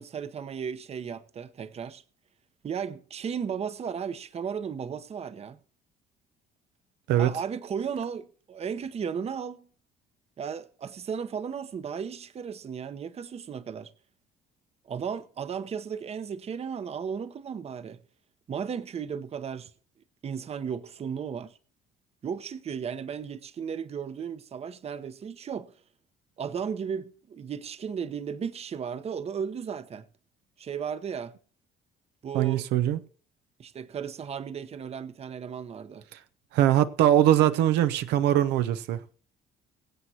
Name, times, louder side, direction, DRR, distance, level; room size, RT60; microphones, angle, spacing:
voice 1, 0.0-2.0 2.6-5.6 7.2-9.7 10.4-13.9 14.9-18.0 18.5-19.7 20.2-21.5 22.2-25.7 26.4-30.0 30.6-31.3 32.2-32.7 33.6-36.0, right 7 dB, 40° right, 0.9 m, -35 dB
voice 2, 32.3-33.0 36.1-36.2 36.5-39.0, right 12 dB, 85° right, 0.8 m, -22 dB
23.5 x 7.9 x 2.8 m
cardioid pair, 110°, 17 cm